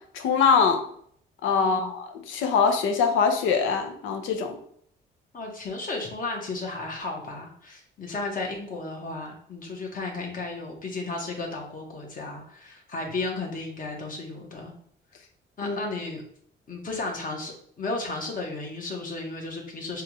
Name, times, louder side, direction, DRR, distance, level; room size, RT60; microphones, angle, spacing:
voice 1, 0.1-0.8 1.4-4.6 15.6-15.8, left 5 dB, 90° left, 5 dB, 0.7 m, -23 dB
voice 2, 1.6-1.9 5.3-14.7 15.6-16.2 16.7-20.0, left 3 dB, 45° left, 1 dB, 1.3 m, -34 dB
4.6 x 2.4 x 3.1 m, 0.62 s
cardioid pair, 90°, 20 cm